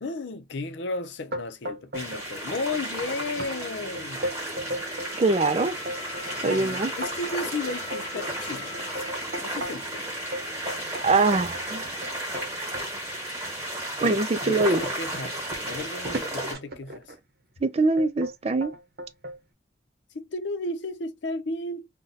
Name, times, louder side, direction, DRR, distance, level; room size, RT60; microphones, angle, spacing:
voice 1, 0.0-4.3 6.4-9.1 9.4-10.1 14.0-17.0 20.1-21.9, left 2 dB, 80° left, 0.6 m, -34 dB
sound 1, 1.3-2.2 2.5-3.0 3.4-3.5 3.9-5.1 5.6-9.9 10.3-12.9 13.5-13.6 14.1-17.2 18.0-18.3 18.6-19.4, equal, 60° right, 0.8 m, -36 dB
sound 2, 1.9-16.5, right 1 dB, 15° right, 1.3 m, -34 dB
Wind instrument woodwind instrument, 2.3-11.0, left 3 dB, 20° left, 0.6 m, -46 dB
voice 2, 5.2-5.7 6.4-6.9 11.0-11.9 14.0-14.8 17.6-18.7, right 3 dB, 35° right, 0.4 m, -23 dB
2.6 x 2.2 x 3.9 m
head